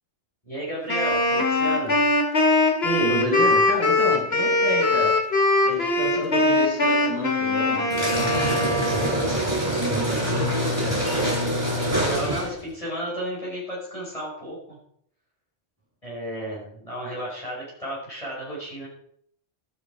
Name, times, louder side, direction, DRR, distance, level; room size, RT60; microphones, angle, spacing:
voice 1, 0.4-2.0 11.9-14.8 16.0-18.9, right 1 dB, 25° left, -6 dB, 6.5 m, -33 dB
Wind instrument woodwind instrument, 0.9-9.3, left 2 dB, 55° left, 2.4 m, -21 dB
voice 2, 2.8-5.2 5.6-9.3 9.8-11.0, equal, 10° right, -6 dB, 6.1 m, -30 dB
sound 1, 7.9-12.7, equal, 25° right, 5.8 m, -25 dB
13.0 x 12.5 x 5.0 m, 0.66 s
omnidirectional pair, 1.3 m